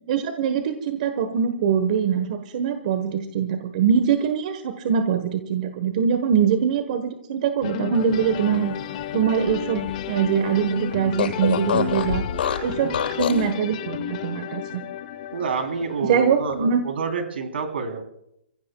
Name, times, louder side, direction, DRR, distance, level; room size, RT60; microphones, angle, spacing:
voice 1, 0.1-8.8 9.1-12.2 12.6-14.8 16.0-16.8, right 7 dB, 45° right, 8 dB, 1.2 m, -23 dB
sound 1, 7.6-16.7, left 11 dB, 35° left, 0.7 m, -33 dB
Fart, 8.2-10.2 10.5-10.6 11.2-13.5, left 7 dB, 65° left, 7.3 m, -28 dB
voice 2, 12.7-13.0 15.3-18.0, right 5 dB, 75° right, 4 dB, 3.5 m, -28 dB
29.5 x 15.5 x 2.3 m, 0.78 s
hypercardioid pair, 160°, 6 cm